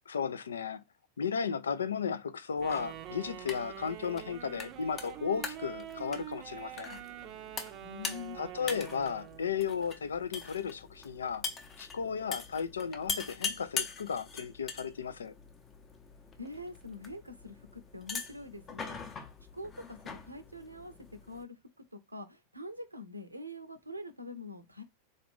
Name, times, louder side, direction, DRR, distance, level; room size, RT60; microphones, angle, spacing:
voice 1, 0.1-0.8 1.2-7.0 8.3-11.4 11.8-15.3, left 6 dB, 70° left, 0.4 m, -34 dB
sound 1, 2.6-21.4, left 5 dB, 25° left, 0.7 m, -43 dB
Wind instrument woodwind instrument, 2.6-9.6, right 12 dB, 40° right, 0.5 m, -45 dB
voice 2, 7.8-8.4 16.4-19.0 19.5-21.6 21.9-24.8, left 2 dB, 85° right, 0.6 m, -44 dB
3.8 x 2.4 x 3.3 m
figure-of-eight pair, 90°, 0 cm